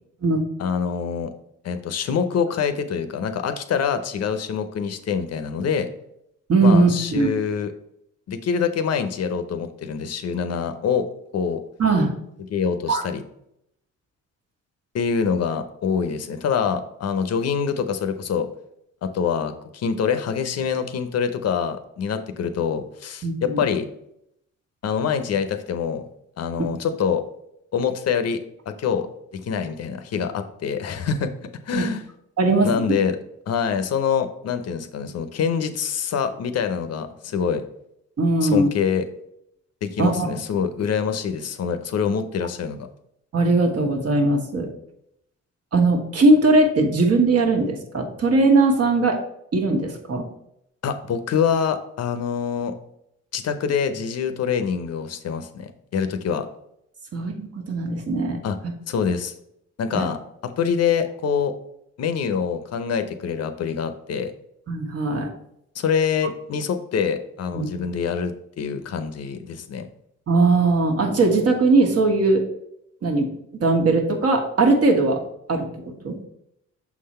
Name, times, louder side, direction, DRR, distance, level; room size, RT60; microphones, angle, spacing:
voice 1, 0.6-1.3 1.6-5.9 6.6-7.7 8.3-11.1 11.3-11.6 12.5-13.2 14.9-18.5 19.0-23.9 24.8-26.0 26.4-27.2 27.7-28.4 28.8-29.1 29.3-31.3 31.7-32.0 32.6-33.2 33.5-37.6 38.4-39.1 39.8-42.9 50.8-52.7 53.3-56.5 58.4-58.6 58.9-59.3 59.8-61.5 62.0-64.3 65.7-69.9, left 6 dB, 55° left, 9 dB, 0.7 m, -25 dB
voice 2, 6.5-7.3 11.8-12.1 12.9-13.0 23.2-23.6 31.7-31.8 32.4-32.7 38.2-38.7 40.0-40.3 43.3-44.6 45.7-49.2 49.5-50.2 57.1-58.4 59.9-60.0 64.7-65.3 67.5-67.7 70.3-72.4 73.0-73.3 73.6-75.2 75.5-76.2, right 3 dB, 55° right, 2 dB, 1.4 m, -19 dB
6.1 x 3.9 x 4.2 m, 0.76 s
cardioid pair, 90°, 30 cm